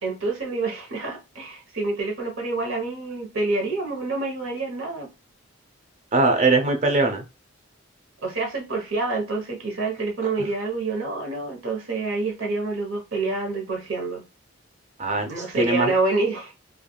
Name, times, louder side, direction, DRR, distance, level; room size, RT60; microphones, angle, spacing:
voice 1, 0.0-5.1 8.2-14.2 15.3-16.5, right 3 dB, 70° right, 1.0 m, -27 dB
voice 2, 6.1-7.2 15.0-15.9, right 3 dB, 35° right, 0.5 m, -21 dB
3.3 x 2.3 x 2.2 m
head